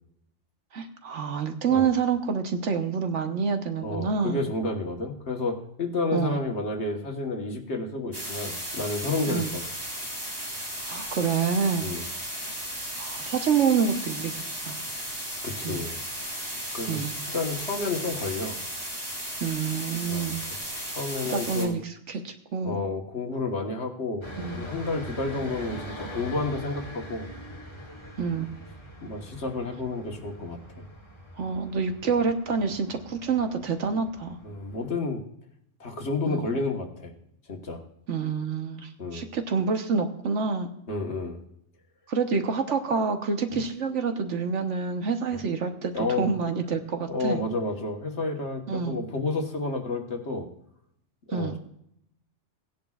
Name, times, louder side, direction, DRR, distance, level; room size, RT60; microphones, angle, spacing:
voice 1, 0.7-4.4 6.1-6.4 9.3-9.5 10.8-11.9 12.4-12.6 13.0-14.8 15.6-15.9 16.9-17.1 19.4-20.4 21.3-22.8 24.4-24.7 28.2-28.5 31.4-34.4 36.3-36.6 38.1-40.7 42.1-45.9 46.2-47.4 48.7-49.0 51.3-51.5, right 5 dB, 80° right, 6 dB, 1.3 m, -27 dB
voice 2, 3.8-9.6 11.8-12.0 15.4-16.0 16.7-18.6 20.1-20.4 20.7-21.7 22.6-24.3 24.5-27.3 29.0-30.8 34.4-35.2 35.8-37.1 37.5-37.8 39.0-39.3 40.9-41.4 43.5-43.6 45.3-45.4 45.9-46.3 47.1-50.5 51.3-51.6, left 3 dB, 65° left, 2 dB, 1.7 m, -30 dB
sound 1, 8.1-21.7, equal, 30° right, 2.8 m, -35 dB
sound 2, 24.2-34.9, equal, 25° left, 1.6 m, -42 dB
18.0 x 10.5 x 2.4 m, 0.75 s
omnidirectional pair, 1.2 m